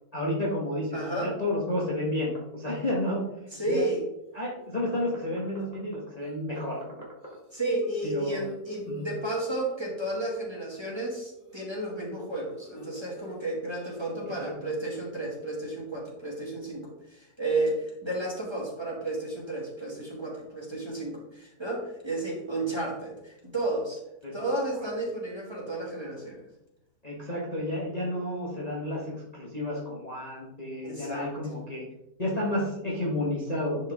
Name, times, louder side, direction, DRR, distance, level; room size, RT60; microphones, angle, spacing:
voice 1, 0.1-3.2 3.7-3.9 4.3-6.8 8.0-8.4 8.9-9.1 14.4-14.5 24.2-24.3 24.8-24.9 27.0-31.9 32.2-33.9, left 1 dB, 25° left, -4 dB, 1.5 m, -31 dB
voice 2, 0.9-1.3 3.5-4.0 7.5-24.0 24.3-26.4 30.8-31.3, right 2 dB, 15° right, -3 dB, 2.1 m, -32 dB
sound 1, 3.6-4.0 4.4-4.7 4.9-5.0 6.2-6.8 7.2-10.2 11.4-13.4 13.7-14.5, left 1 dB, 35° right, 2.4 m, -50 dB
11.0 x 4.8 x 3.6 m, 0.85 s
omnidirectional pair, 1.6 m